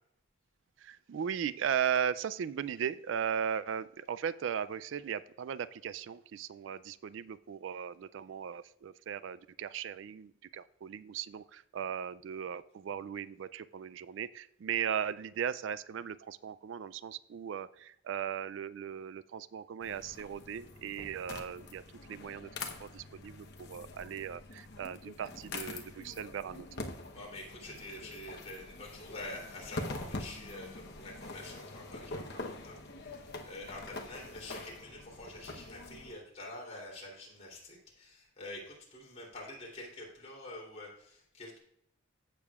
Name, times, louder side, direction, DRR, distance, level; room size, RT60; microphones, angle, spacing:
voice 1, 0.8-21.8 22.1-26.7, right 8 dB, 70° right, 17 dB, 0.3 m, -37 dB
sound 1, 19.8-36.1, left 2 dB, 55° left, 1.0 m, -45 dB
voice 2, 27.1-41.6, left 1 dB, 35° left, -3 dB, 3.1 m, -47 dB
15.5 x 6.8 x 2.4 m, 0.75 s
head